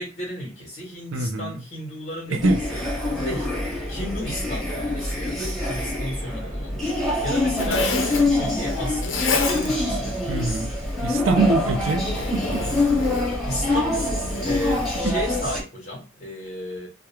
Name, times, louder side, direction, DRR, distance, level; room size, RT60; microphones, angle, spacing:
voice 1, 0.0-2.4 2.7-2.9 3.1-3.5 3.9-10.2 13.5-16.9, left 1 dB, 35° left, 0.9 m, -33 dB
voice 2, 1.1-1.6 2.3-2.6 10.3-10.7 11.0-12.6 15.0-15.2, right 3 dB, 75° right, 0.5 m, -24 dB
sound 1, 2.4-15.6, left 2 dB, ahead, 1.2 m, -25 dB
Zipper (clothing), 6.8-15.0, left 4 dB, 65° left, 0.5 m, -32 dB
2.3 x 2.1 x 3.0 m
head